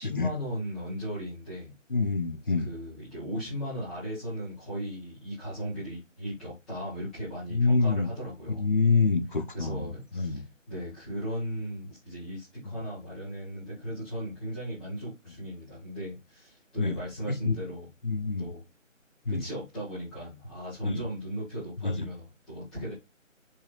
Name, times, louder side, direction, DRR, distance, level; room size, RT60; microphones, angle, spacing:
voice 1, 0.0-1.7 2.6-8.6 9.5-17.9 18.4-18.6 19.3-22.9, equal, ahead, 1.0 m, -37 dB
voice 2, 1.9-2.7 7.5-8.1 8.6-10.4 12.7-12.8 16.8-17.0 17.4-17.6 18.0-18.5 19.3-19.4 20.8-21.0 21.8-22.0, left 4 dB, 40° left, 0.6 m, -26 dB
4.8 x 4.1 x 2.4 m
figure-of-eight pair, 160°, 40 cm